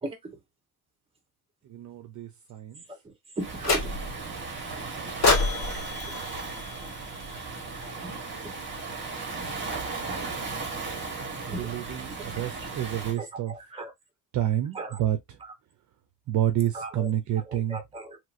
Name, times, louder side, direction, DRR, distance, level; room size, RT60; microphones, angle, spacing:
voice 1, 1.7-2.8 11.5-13.5 14.3-15.4 16.3-17.8, right 11 dB, 55° right, 0.6 m, -29 dB
voice 2, 2.9-3.9 4.5-4.6 11.5-11.7 13.2-13.9 14.7-15.1 15.4-15.5 16.7-18.2, right 2 dB, 15° right, 1.2 m, -38 dB
Waves surf, 3.4-13.2, right 3 dB, 30° right, 1.4 m, -36 dB
sound 1, 3.6-4.3 5.2-7.5, left 3 dB, 45° left, 1.8 m, -27 dB
3.1 x 3.0 x 2.5 m
cardioid pair, 140°, 36 cm